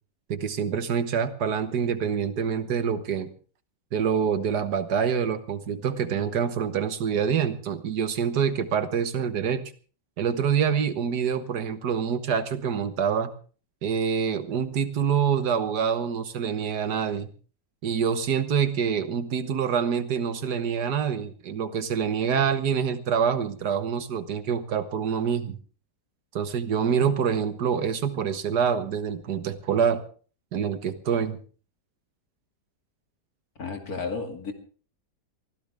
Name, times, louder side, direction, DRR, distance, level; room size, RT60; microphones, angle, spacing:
voice 1, 0.3-3.3 3.9-9.6 10.2-13.3 13.8-17.3 17.8-25.6 26.3-30.0 30.5-31.4, right 7 dB, 70° right, 11 dB, 1.8 m, -26 dB
voice 2, 33.6-34.5, left 4 dB, 60° left, 4 dB, 2.9 m, -32 dB
23.5 x 16.0 x 3.4 m, 0.40 s
omnidirectional pair, 1.8 m